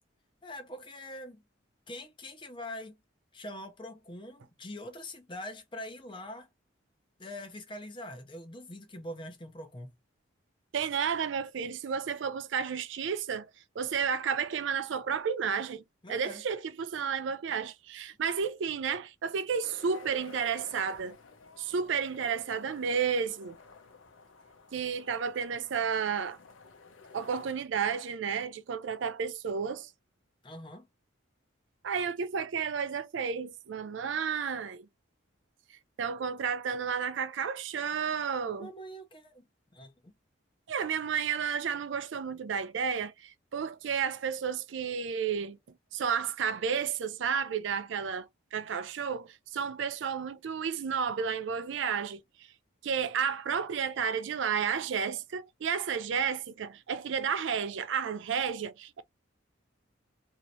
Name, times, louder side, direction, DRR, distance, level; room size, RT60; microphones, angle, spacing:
voice 1, 0.4-1.4 1.9-3.0 3.3-6.5 7.2-9.9 16.0-16.4 30.4-30.9 38.6-39.5 39.7-40.1, left 1 dB, 25° left, 0.7 m, -43 dB
voice 2, 10.7-13.5 13.8-15.8 16.1-21.2 21.6-23.6 24.7-26.4 27.1-29.9 31.8-34.9 36.0-38.7 40.7-45.6 45.9-52.2 52.8-59.0, right 6 dB, 65° right, 0.4 m, -32 dB
sound 1, 19.6-27.5, left 4 dB, 80° left, 0.8 m, -53 dB
3.0 x 2.7 x 2.7 m
head